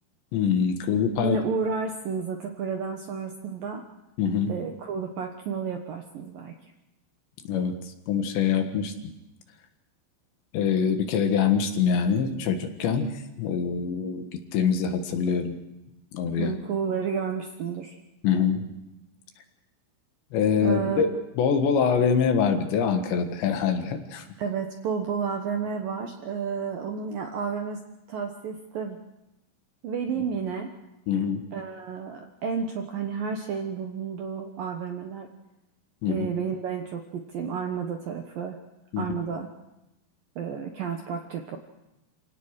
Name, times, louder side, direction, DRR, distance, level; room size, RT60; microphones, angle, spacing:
voice 1, 0.3-1.4 4.2-4.5 7.5-7.8 8.1-8.9 10.5-14.2 14.5-15.6 16.1-16.5 18.2-18.7 20.3-21.1 21.4-24.3 31.1-31.4 36.0-36.2 38.9-39.2, left 7 dB, 70° left, 6 dB, 3.7 m, -24 dB
voice 2, 1.2-3.8 4.5-6.5 16.4-18.0 20.6-21.0 24.4-27.8 28.1-29.0 29.8-30.7 31.5-35.3 36.1-38.6 39.0-39.5 40.4-41.6, right 6 dB, 70° right, 4 dB, 2.2 m, -31 dB
28.0 x 18.0 x 6.5 m, 0.94 s
omnidirectional pair, 5.6 m